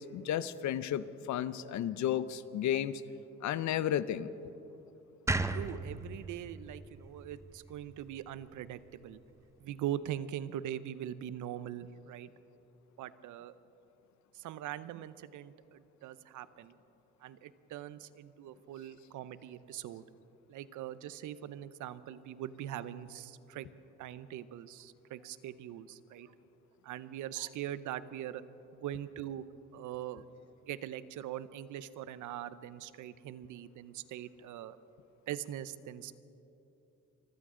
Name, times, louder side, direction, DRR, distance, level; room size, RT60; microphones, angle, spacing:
voice 1, 0.0-3.0 3.4-4.3, left 10 dB, 70° left, 15 dB, 0.7 m, -33 dB
sound 1, 5.3-8.4, right 2 dB, 10° right, 0.6 m, -36 dB
voice 2, 5.5-9.2 9.6-12.3 13.0-13.5 14.3-16.8 17.2-20.0 20.5-23.7 24.0-26.3 26.8-28.4 28.7-29.5 29.7-30.2 30.7-34.8 35.3-36.2, right 11 dB, 80° right, 15 dB, 0.7 m, -42 dB
25.0 x 15.0 x 3.8 m, 2.9 s
cardioid pair, 90°, 30 cm